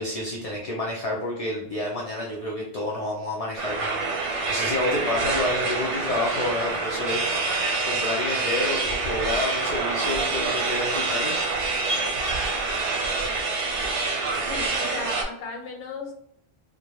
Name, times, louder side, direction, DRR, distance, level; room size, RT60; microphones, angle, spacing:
voice 1, 0.0-7.2 7.8-11.4, left 1 dB, 50° left, -3 dB, 0.4 m, -29 dB
sound 1, 3.6-15.2, right 3 dB, 90° right, 0.9 m, -26 dB
voice 2, 14.5-16.1, left 4 dB, 85° left, 2 dB, 0.9 m, -36 dB
2.5 x 2.1 x 3.0 m, 0.69 s
omnidirectional pair, 1.2 m